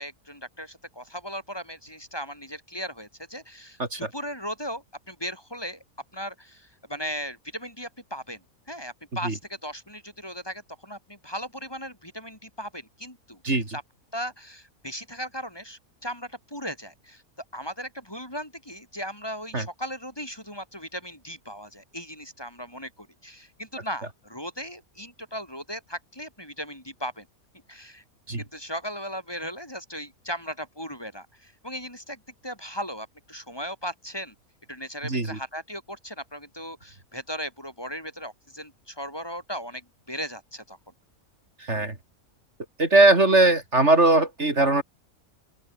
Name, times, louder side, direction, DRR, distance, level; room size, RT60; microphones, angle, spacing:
voice 1, 0.0-5.8 6.1-8.4 8.7-13.4 13.7-13.8 14.1-17.2 17.5-27.3 27.7-28.0 28.4-34.3 34.7-40.8, equal, 15° left, 3.9 m, -37 dB
voice 2, 13.4-13.8 19.5-19.7 28.3-28.4 35.0-35.4 41.6-42.0 42.8-44.8, right 2 dB, 50° right, 3.8 m, -20 dB
open air
omnidirectional pair, 1.5 m